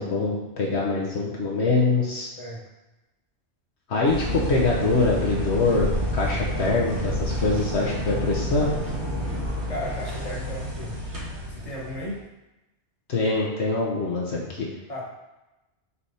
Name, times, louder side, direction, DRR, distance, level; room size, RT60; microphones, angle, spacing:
voice 1, 0.0-2.3 3.9-5.9 6.1-8.7 13.1-14.7, left 3 dB, 70° left, -3 dB, 1.2 m, -24 dB
sound 1, 4.0-12.1, equal, 75° right, 1.6 m, -29 dB
voice 2, 9.7-11.0 11.5-12.2 14.9-15.0, left 1 dB, 30° left, -4 dB, 1.4 m, -35 dB
7.1 x 3.4 x 4.2 m, 1.0 s
omnidirectional pair, 1.2 m